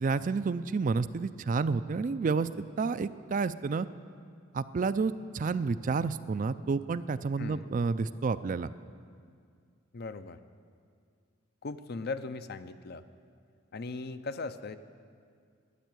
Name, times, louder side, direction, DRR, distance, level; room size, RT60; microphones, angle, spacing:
voice 1, 0.0-2.5 2.8-3.9 4.5-8.7, right 4 dB, 40° right, 14 dB, 0.4 m, -30 dB
voice 2, 7.4-7.7 9.9-10.4 11.6-13.0 13.7-14.8, left 3 dB, 55° left, 11 dB, 0.6 m, -38 dB
12.5 x 9.4 x 9.1 m, 2.2 s
head